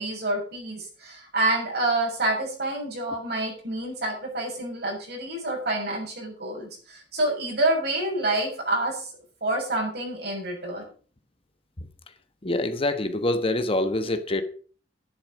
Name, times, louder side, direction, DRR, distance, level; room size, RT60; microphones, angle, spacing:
voice 1, 0.0-9.1 9.4-10.8, right 2 dB, 65° right, 6.7 m, -28 dB
voice 2, 12.4-14.4, left 2 dB, 30° left, 1.2 m, -25 dB
11.5 x 10.5 x 5.3 m
head